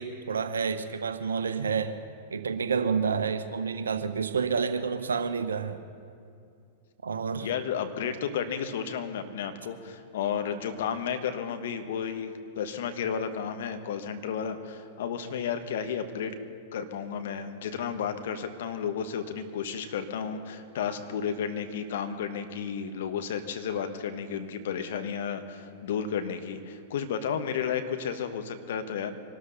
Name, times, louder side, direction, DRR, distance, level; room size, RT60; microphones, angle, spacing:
voice 1, 0.0-1.9 2.3-5.8 7.0-7.5, right 6 dB, 75° right, 10 dB, 1.0 m, -29 dB
voice 2, 7.4-16.3 16.7-29.1, left 7 dB, 60° left, 8 dB, 1.3 m, -32 dB
24.5 x 13.0 x 4.1 m, 2.4 s
figure-of-eight pair, 100°, 0 cm